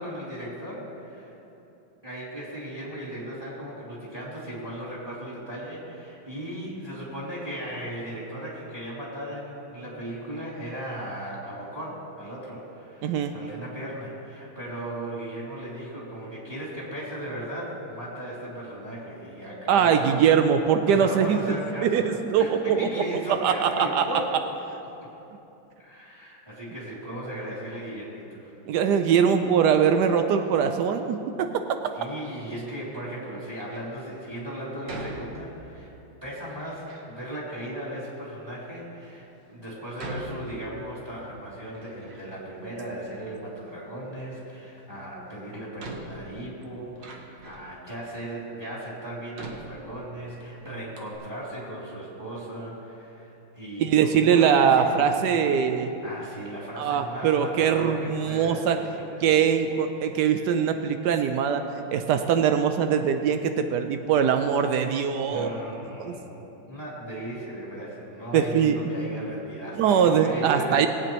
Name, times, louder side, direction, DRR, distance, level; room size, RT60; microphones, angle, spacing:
voice 1, 0.0-1.4 2.0-20.2 20.8-22.1 22.4-24.3 25.8-28.5 32.0-35.9 36.2-55.4 55.8-59.8 65.2-70.9, right 1 dB, 10° right, -8 dB, 2.8 m, -37 dB
voice 2, 13.0-13.3 19.7-21.4 21.8-22.9 23.3-24.1 28.7-31.6 53.8-55.9 56.8-58.8 59.2-61.6 61.9-65.6 66.0-66.1 68.3-68.8 69.8-70.9, right 7 dB, 90° right, 7 dB, 0.9 m, -22 dB
Door, 33.5-34.0 34.9-35.8 36.5-37.1 37.9-38.0 38.7-38.8 40.0-41.1 41.5-42.5 42.8-43.7 45.0-45.1 45.8-47.8 48.4-48.5 49.3-50.4 50.7-50.8 51.0-51.2, right 2 dB, 60° right, 1.7 m, -42 dB
20.5 x 8.8 x 3.0 m, 3.0 s
omnidirectional pair, 2.4 m